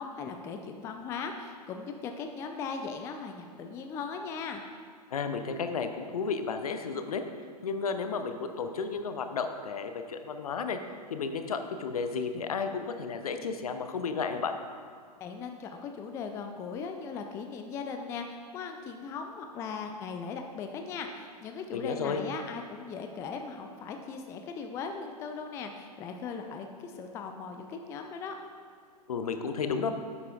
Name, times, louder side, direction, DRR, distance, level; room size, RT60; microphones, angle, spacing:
voice 1, 0.0-4.6 15.2-28.4, left 5 dB, 15° left, 5 dB, 0.4 m, -38 dB
voice 2, 5.1-7.2 7.6-10.8 11.1-14.5 21.7-22.2 29.1-29.9, left 5 dB, 60° left, 8 dB, 0.7 m, -32 dB
10.5 x 8.2 x 2.4 m, 2.1 s
figure-of-eight pair, 110°, 21 cm